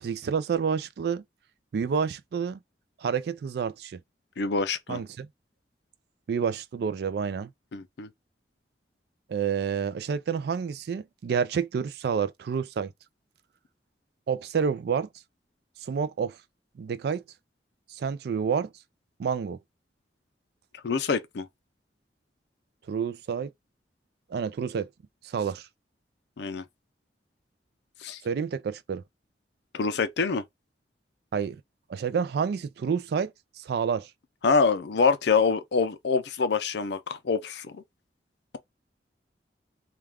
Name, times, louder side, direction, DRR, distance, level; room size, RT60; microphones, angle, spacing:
voice 1, 0.0-1.2 1.7-2.6 3.0-4.0 4.9-5.3 6.3-7.5 9.3-12.9 14.3-15.1 15.8-16.4 16.8-17.2 18.0-18.7 19.2-19.6 22.9-23.5 24.3-24.9 25.2-25.7 28.2-29.0 31.3-31.6 31.9-33.3 33.6-34.1, right 6 dB, 60° right, 0.3 m, -29 dB
voice 2, 4.4-5.0 7.7-8.1 20.8-21.5 26.4-26.6 28.0-28.2 29.7-30.4 34.4-37.8, left 4 dB, 70° left, 0.5 m, -25 dB
2.3 x 2.3 x 3.3 m
head